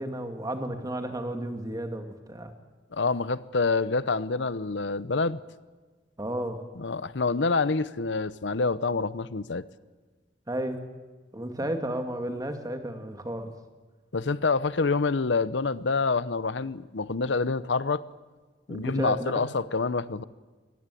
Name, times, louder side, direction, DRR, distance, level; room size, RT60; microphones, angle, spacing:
voice 1, 0.0-2.5 6.2-6.6 10.5-10.8 11.3-13.5 18.7-19.4, right 1 dB, 20° right, 6 dB, 2.3 m, -33 dB
voice 2, 2.9-5.4 6.8-9.6 11.6-11.7 14.1-18.0 18.7-20.2, left 4 dB, 80° left, 17 dB, 0.8 m, -27 dB
23.5 x 19.0 x 8.5 m, 1.3 s
head